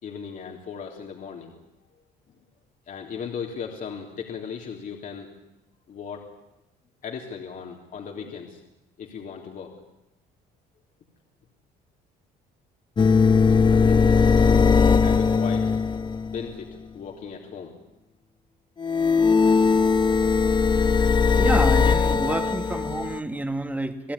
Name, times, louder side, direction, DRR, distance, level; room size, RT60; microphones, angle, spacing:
voice 1, 0.0-1.6 2.9-5.3 5.9-6.2 7.0-8.6 9.0-9.7 13.5-15.7 16.2-17.7, left 6 dB, 50° left, 1 dB, 3.3 m, -37 dB
sound 1, 13.0-16.5 18.8-23.2, left 5 dB, 25° left, 1.1 m, -19 dB
voice 2, 21.3-24.1, right 1 dB, 10° right, 7 dB, 2.4 m, -28 dB
28.0 x 17.5 x 9.9 m, 0.91 s
cardioid pair, 110°, 17 cm